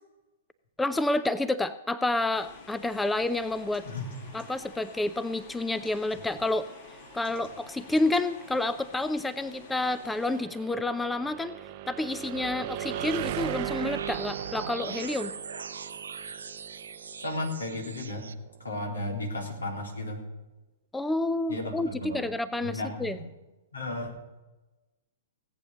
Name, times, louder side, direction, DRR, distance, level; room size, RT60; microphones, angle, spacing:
voice 1, 0.8-3.8 4.3-6.7 7.1-11.5 11.9-15.3 20.9-23.2, left 2 dB, 5° left, 14 dB, 0.6 m, -29 dB
sound 1, 2.3-10.4, left 5 dB, 50° left, 2.0 m, -50 dB
sound 2, 3.2-19.0, right 14 dB, 45° right, 0.7 m, -41 dB
sound 3, 12.3-18.3, right 6 dB, 75° right, 0.8 m, -40 dB
voice 2, 17.2-18.3 18.6-20.2 21.5-22.3 22.6-23.3 23.7-24.1, left 1 dB, 85° left, 2 dB, 3.6 m, -34 dB
17.5 x 8.6 x 6.4 m, 1.1 s
figure-of-eight pair, 115°, 0 cm